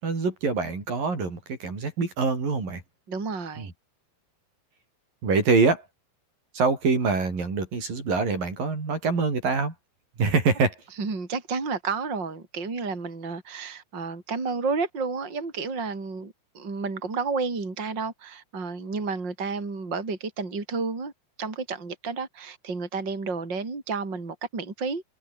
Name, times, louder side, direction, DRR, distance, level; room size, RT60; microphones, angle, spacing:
voice 1, 0.0-2.8 3.6-3.7 5.2-5.8 6.5-9.7 10.2-10.8, right 4 dB, 60° right, 7.9 m, -25 dB
voice 2, 3.1-3.7 11.0-21.1 21.4-25.0, right 4 dB, 25° right, 4.8 m, -31 dB
omnidirectional pair, 4.5 m